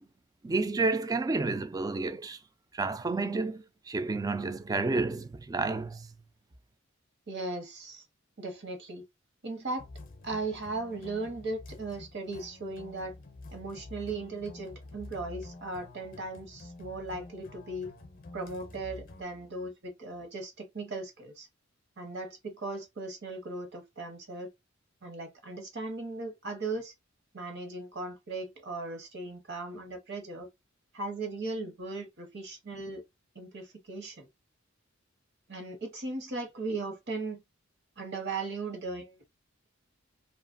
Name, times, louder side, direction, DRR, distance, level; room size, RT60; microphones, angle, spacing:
voice 1, 0.4-2.4 2.7-6.1, right 3 dB, 20° right, 0.3 m, -30 dB
voice 2, 7.3-8.0 8.4-9.0 9.4-9.9 10.2-13.1 13.5-17.9 18.3-21.5 22.0-24.5 25.0-26.9 27.3-30.5 30.9-33.0 33.3-34.3 35.5-37.4 38.0-39.2, right 2 dB, 60° right, 1.1 m, -37 dB
sound 1, 9.8-19.2, left 2 dB, 45° left, 0.6 m, -48 dB
2.8 x 2.4 x 2.5 m
head